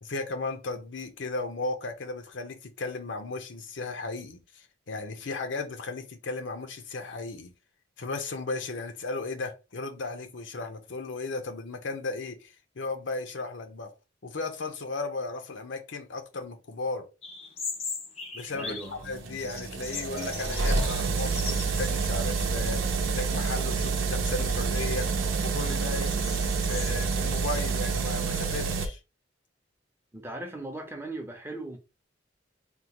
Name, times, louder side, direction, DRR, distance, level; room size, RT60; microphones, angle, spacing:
voice 1, 0.0-7.5 8.0-13.9 14.2-17.1 18.3-18.8 19.0-25.1 25.4-26.2 26.7-29.0, left 3 dB, 70° left, 0.7 m, -35 dB
sound 1, 17.2-19.0 19.3-22.0 22.4-22.5 23.2-23.6 24.1-26.9, left 4 dB, 30° left, 0.5 m, -39 dB
voice 2, 18.5-19.1 30.1-31.8, right 2 dB, 10° right, 0.6 m, -38 dB
sound 2, 18.5-28.9, right 4 dB, 85° right, 0.7 m, -28 dB
3.6 x 2.3 x 2.9 m
head